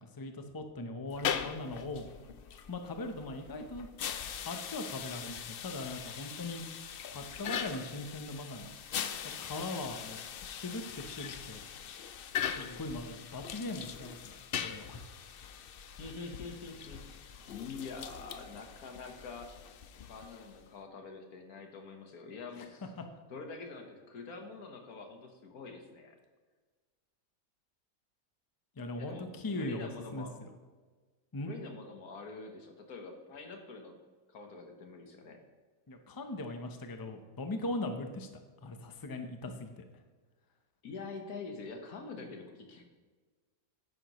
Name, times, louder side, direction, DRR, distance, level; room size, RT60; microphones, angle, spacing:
voice 1, 0.0-2.1 2.7-3.9 4.5-6.7 7.1-8.7 9.4-11.6 11.9-12.0 12.6-15.0 22.6-22.7 28.8-30.5 31.3-31.5 35.9-39.8 42.2-42.3, left 2 dB, 20° left, 6 dB, 0.6 m, -40 dB
sound 1, 1.1-20.7, left 8 dB, 65° left, 0.5 m, -41 dB
voice 2, 15.9-17.2 17.5-19.5 20.1-22.9 23.3-26.2 29.0-30.4 31.4-34.0 34.3-35.4 40.8-42.8, left 4 dB, 85° left, 4 dB, 1.7 m, -45 dB
11.0 x 9.5 x 3.1 m, 1.4 s
omnidirectional pair, 1.5 m